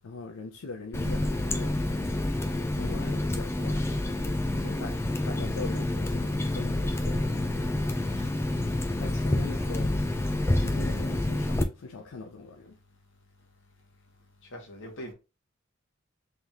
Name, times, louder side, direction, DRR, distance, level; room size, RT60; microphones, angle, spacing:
voice 1, 0.0-2.1 2.4-5.0 5.2-7.9 9.0-10.0 10.6-12.8, left 3 dB, 80° left, 0.5 m, -42 dB
Water tap faucet, 0.9-11.6, left 1 dB, 10° left, 0.4 m, -28 dB
voice 2, 14.5-15.1, equal, 60° left, 1.3 m, -43 dB
3.6 x 3.4 x 2.8 m
head